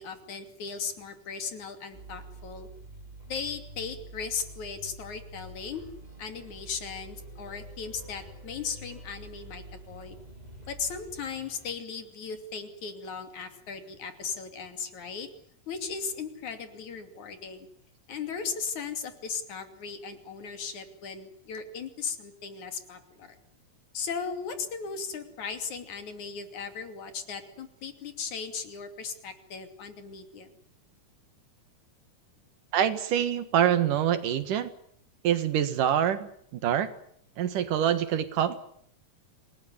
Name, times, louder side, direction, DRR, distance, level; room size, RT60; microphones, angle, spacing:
voice 1, 0.0-2.7 3.3-5.8 6.2-10.2 10.7-15.3 15.7-17.7 18.1-23.4 23.9-30.5, left 5 dB, 65° left, 7 dB, 4.1 m, -37 dB
sound 1, 1.9-11.7, right 1 dB, 10° right, 6.6 m, -47 dB
voice 2, 32.7-34.7 35.2-36.9 37.4-38.6, right 9 dB, 85° right, 11 dB, 3.3 m, -25 dB
27.5 x 18.5 x 9.7 m, 0.68 s
omnidirectional pair, 3.6 m